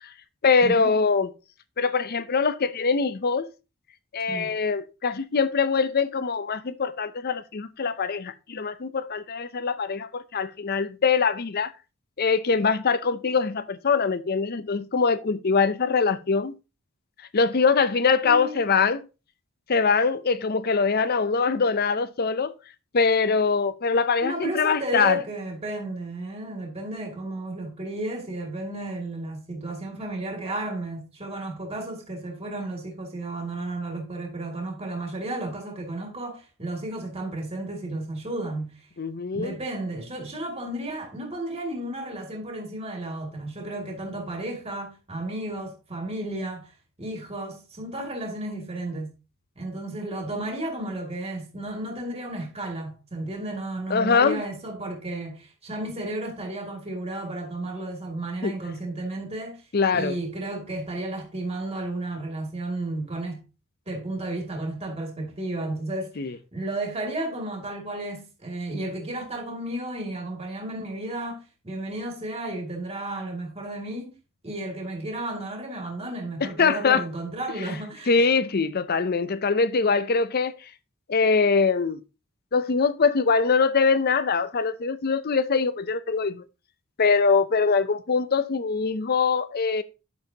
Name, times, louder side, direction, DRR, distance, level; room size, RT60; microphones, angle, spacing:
voice 1, 0.4-1.3 1.8-3.5 4.1-11.7 12.2-16.5 17.3-19.0 19.7-22.5 22.9-25.2 39.0-39.6 53.9-54.4 58.4-58.5 59.7-60.2 66.2-66.4 76.4-77.0 78.1-80.5 81.1-82.0 82.5-86.4 87.0-89.8, left 5 dB, 45° left, 0.6 m, -23 dB
voice 2, 18.2-18.8 24.2-38.7 39.3-46.7 47.0-49.1 49.6-59.6 59.9-63.4 63.9-74.1 74.4-78.2, right 2 dB, 30° right, 2.5 m, -33 dB
10.5 x 7.3 x 2.9 m
head